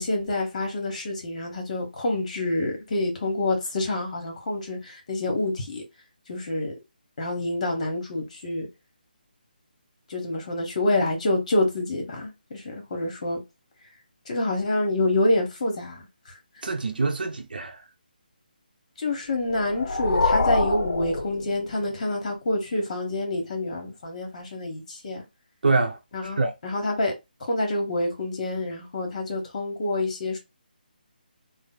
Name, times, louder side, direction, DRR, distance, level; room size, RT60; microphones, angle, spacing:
voice 1, 0.0-5.8 6.3-6.7 7.2-8.7 10.1-13.4 14.3-16.0 19.0-25.2 26.1-27.1 27.4-30.4, left 2 dB, 45° left, 1.3 m, -27 dB
voice 2, 16.6-17.8 25.6-26.5, right 3 dB, 70° right, 0.7 m, -25 dB
sound 1, 19.4-22.0, left 3 dB, 65° left, 0.7 m, -26 dB
3.3 x 2.1 x 3.8 m
figure-of-eight pair, 155°, 5 cm